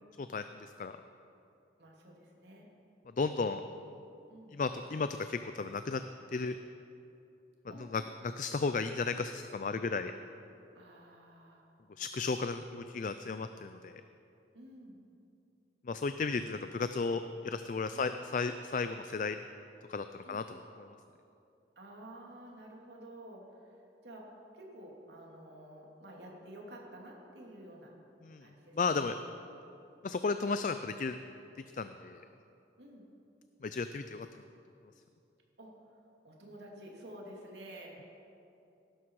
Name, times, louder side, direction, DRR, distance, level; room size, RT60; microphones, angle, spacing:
voice 1, 0.2-0.9 3.1-3.6 4.5-6.0 6.3-6.6 7.8-10.1 12.0-14.0 15.8-19.4 19.9-21.0 28.2-28.5 28.7-29.2 30.0-31.2 31.7-32.2 33.6-34.3, left 4 dB, 45° left, 10 dB, 0.4 m, -34 dB
voice 2, 1.8-2.7 4.3-4.6 7.7-7.9 10.7-11.6 14.5-15.0 17.9-18.1 20.2-20.4 21.8-27.9 28.4-29.1 32.8-33.0 35.6-35.7 36.2-38.0, right 1 dB, 75° right, -2 dB, 2.8 m, -51 dB
17.5 x 12.0 x 4.7 m, 2.7 s
head